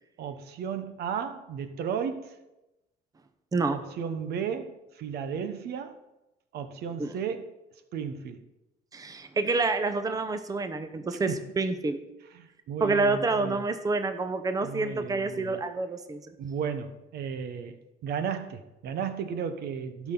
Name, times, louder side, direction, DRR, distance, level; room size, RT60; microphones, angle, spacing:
voice 1, 0.2-2.4 3.7-6.0 6.5-7.5 7.9-8.4 11.1-11.4 12.3-13.6 14.6-15.6 16.4-20.1, right 7 dB, 70° right, 10 dB, 1.0 m, -34 dB
voice 2, 8.9-12.0 12.8-16.2, right 3 dB, 20° right, 9 dB, 0.8 m, -28 dB
16.0 x 6.2 x 3.8 m, 0.96 s
cardioid pair, 110°, 17 cm